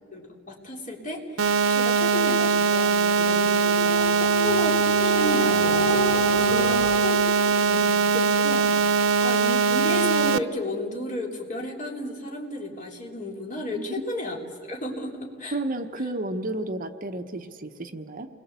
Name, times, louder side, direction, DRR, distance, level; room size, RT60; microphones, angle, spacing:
voice 1, 0.1-6.8 7.0-14.4 14.6-15.6, left 1 dB, 40° left, 0 dB, 3.8 m, -33 dB
sound 1, 1.4-10.4, right 5 dB, 80° right, 0.7 m, -21 dB
sound 2, 3.7-7.0, equal, 70° left, 3.1 m, -30 dB
voice 2, 6.5-7.2 7.7-7.8 13.7-14.0 15.5-18.3, right 1 dB, 45° right, 6 dB, 1.1 m, -32 dB
29.0 x 22.0 x 8.3 m, 2.2 s
head